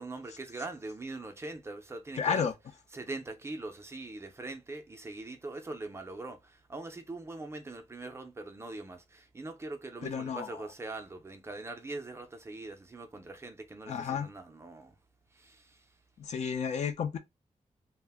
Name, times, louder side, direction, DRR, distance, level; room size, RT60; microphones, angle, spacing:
voice 1, 0.0-2.5 2.9-14.9 15.4-15.6, right 2 dB, 20° right, 0.4 m, -42 dB
voice 2, 2.2-2.5 10.0-10.5 13.9-14.3 16.2-17.2, left 6 dB, 65° left, 0.4 m, -31 dB
2.4 x 2.0 x 3.4 m
wide cardioid pair, 175°, 13 cm